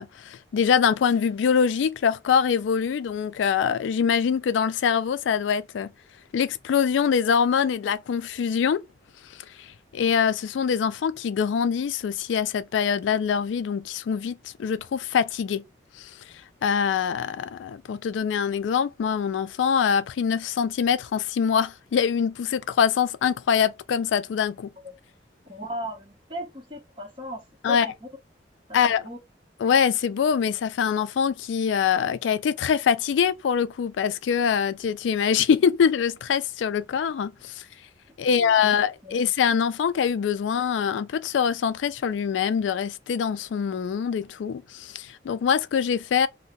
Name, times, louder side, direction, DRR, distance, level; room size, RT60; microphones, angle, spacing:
voice 1, 0.0-5.9 6.3-8.8 9.3-15.6 16.0-16.2 16.6-24.7 27.6-27.9 28.7-29.1 29.6-37.6 38.2-46.3, left 7 dB, 85° left, 0.3 m, -24 dB
voice 2, 25.4-28.1 28.7-28.8 29.0-29.2 38.2-38.7 39.0-39.2, equal, 30° right, 1.2 m, -37 dB
2.7 x 2.1 x 3.6 m
head